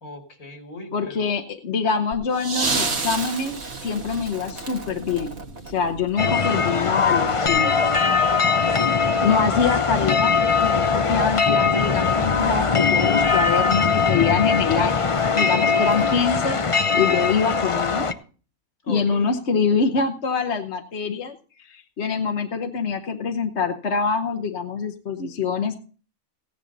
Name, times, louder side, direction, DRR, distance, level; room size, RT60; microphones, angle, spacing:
voice 1, 0.0-1.4 8.4-9.2 15.6-15.9 18.8-19.3, left 2 dB, 75° left, 3 dB, 2.9 m, -39 dB
voice 2, 0.9-5.3 5.7-7.8 9.2-16.6 16.9-18.0 18.9-21.4 21.6-25.7, left 5 dB, 55° left, 5 dB, 1.3 m, -25 dB
sound 1, 2.1-6.3 7.5-7.6, right 3 dB, 50° right, 1.8 m, -30 dB
sound 2, 6.2-18.1, left 5 dB, 35° left, 0.5 m, -21 dB
16.5 x 10.0 x 4.0 m, 0.40 s
omnidirectional pair, 1.5 m